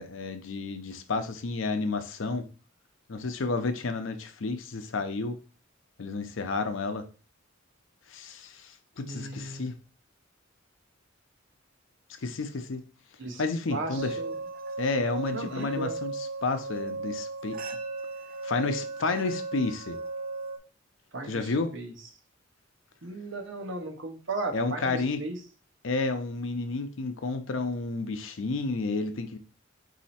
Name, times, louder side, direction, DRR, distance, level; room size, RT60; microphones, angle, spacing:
voice 1, 0.0-2.5 3.1-5.4 6.0-7.0 8.1-9.7 12.2-12.8 13.4-14.2 14.8-17.6 18.4-20.0 21.2-21.7 24.5-25.2 25.8-29.4, left 3 dB, 70° left, 8 dB, 0.6 m, -31 dB
voice 2, 9.1-9.7 13.2-13.4 13.7-14.3 15.3-16.0 21.1-21.4 21.7-21.9 23.0-25.4, right 2 dB, 65° right, 4 dB, 0.9 m, -36 dB
sound 1, 14.0-20.6, right 3 dB, 50° right, 0.4 m, -36 dB
4.2 x 2.8 x 4.2 m, 0.36 s
head